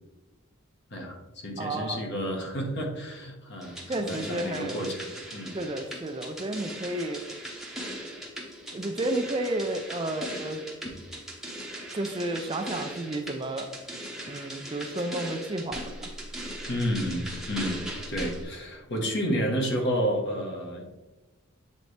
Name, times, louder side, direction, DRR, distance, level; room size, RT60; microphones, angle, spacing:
voice 1, 0.9-5.6 16.7-20.8, equal, 55° left, 2 dB, 1.1 m, -31 dB
voice 2, 1.6-2.0 3.9-4.7 5.5-7.2 8.7-10.6 11.9-13.7 14.3-16.1, right 1 dB, 25° right, 6 dB, 0.4 m, -31 dB
sound 1, 3.6-18.4, right 1 dB, ahead, 0.8 m, -39 dB
7.7 x 4.0 x 3.2 m, 1.1 s
head